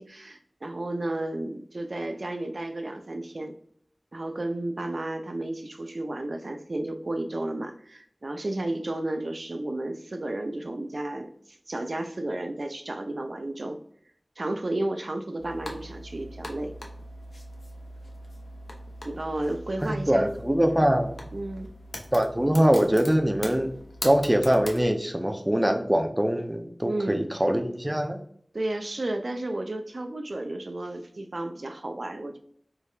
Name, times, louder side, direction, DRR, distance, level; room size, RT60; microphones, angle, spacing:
voice 1, 0.0-3.6 4.1-13.8 14.4-16.7 19.0-20.3 21.3-21.7 26.8-27.3 28.5-32.4, right 1 dB, 70° right, 5 dB, 0.5 m, -32 dB
sound 1, 15.4-24.9, left 1 dB, 85° left, 0.8 m, -41 dB
voice 2, 19.8-21.2 22.1-23.7 24.0-28.2, equal, 20° right, 5 dB, 0.7 m, -23 dB
4.6 x 3.2 x 2.4 m, 0.63 s
wide cardioid pair, 45°, 0 cm